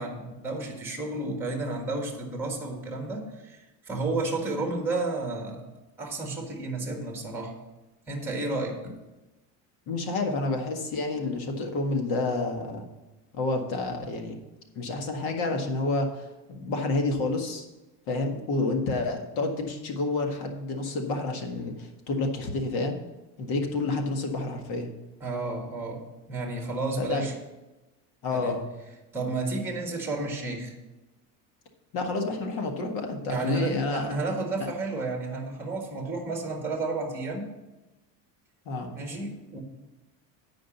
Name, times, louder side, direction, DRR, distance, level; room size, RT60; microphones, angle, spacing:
voice 1, 0.0-5.7 6.0-7.6 8.1-8.8 25.2-27.3 28.3-28.6 29.1-30.7 33.3-37.5 38.9-39.6, right 2 dB, 5° right, 2 dB, 1.5 m, -32 dB
voice 2, 9.9-12.9 13.4-14.4 14.8-16.3 16.6-17.6 18.1-23.0 23.4-24.9 27.0-27.3 28.2-28.6 31.9-34.1 38.7-38.9, left 2 dB, 60° left, 4 dB, 1.8 m, -29 dB
9.4 x 5.1 x 7.1 m, 1.1 s
supercardioid pair, 135°, 42 cm